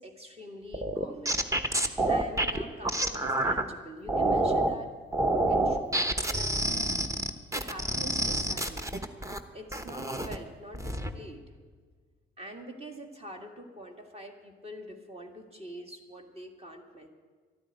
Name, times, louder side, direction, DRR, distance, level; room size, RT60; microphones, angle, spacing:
voice 1, 0.0-1.4 1.8-5.0 5.3-7.0 7.5-8.9 9.5-11.4 12.4-17.1, right 1 dB, 30° right, 3 dB, 2.0 m, -45 dB
sound 1, 0.7-3.6 4.1-4.7 5.1-9.4 9.7-10.4 10.7-11.1, right 1 dB, 15° right, 1.0 m, -28 dB
12.5 x 9.8 x 9.0 m, 1.6 s
cardioid pair, 90°, 20 cm